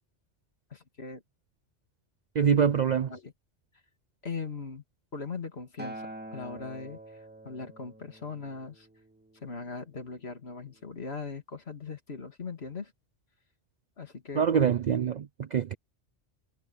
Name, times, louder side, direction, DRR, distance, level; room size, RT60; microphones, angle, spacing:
voice 1, 0.7-1.2 2.5-2.6 3.1-3.3 4.2-4.8 5.1-7.0 7.4-8.9 9.4-12.9 14.0-14.7, left 4 dB, 60° left, 2.7 m, -39 dB
voice 2, 2.4-3.1 14.3-15.7, right 7 dB, 60° right, 0.5 m, -25 dB
Acoustic guitar, 5.8-10.1 10.9-11.0, right 1 dB, 10° right, 1.9 m, -46 dB
omnidirectional pair, 1.2 m